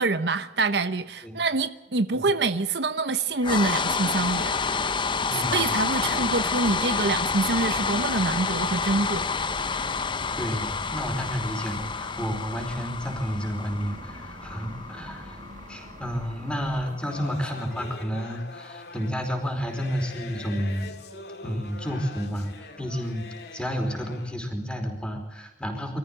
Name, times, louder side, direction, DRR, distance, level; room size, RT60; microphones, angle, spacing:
voice 1, 0.0-4.6 5.3-9.2, right 3 dB, 70° right, 1.0 m, -26 dB
sound 1, 3.4-17.5, left 5 dB, 30° left, 0.7 m, -29 dB
sound 2, 4.0-16.9, right 1 dB, 45° right, 2.0 m, -44 dB
voice 2, 5.3-5.7 10.4-15.4 15.7-20.9 21.4-23.2 23.5-26.0, equal, 5° left, 4.8 m, -31 dB
sound 3, 16.8-24.3, left 3 dB, 65° left, 2.4 m, -43 dB
24.5 x 14.5 x 9.0 m
head